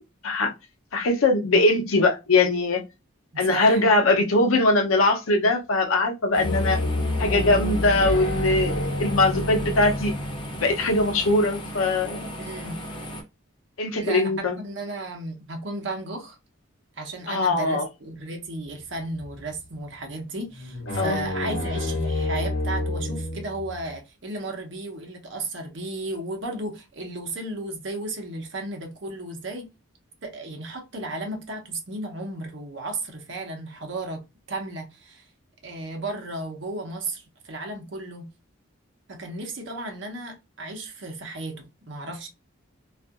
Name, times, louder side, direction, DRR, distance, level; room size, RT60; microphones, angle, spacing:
voice 1, 0.9-2.8 3.4-6.8 7.2-10.1 10.6-12.3 13.8-14.6 17.3-17.9 21.0-21.2, left 2 dB, 85° left, 0.6 m, -21 dB
voice 2, 3.5-3.8 12.4-12.8 13.9-14.3 14.6-16.4 17.0-29.7 30.2-34.2 34.5-35.2 35.6-38.3 39.1-42.3, right 2 dB, 60° right, 0.8 m, -34 dB
sound 1, 6.3-13.2, equal, 25° left, 0.5 m, -37 dB
sound 2, 6.4-11.4 18.9-19.6 19.9-20.0 20.5-23.9, left 1 dB, 55° left, 0.9 m, -28 dB
2.6 x 2.4 x 2.3 m
head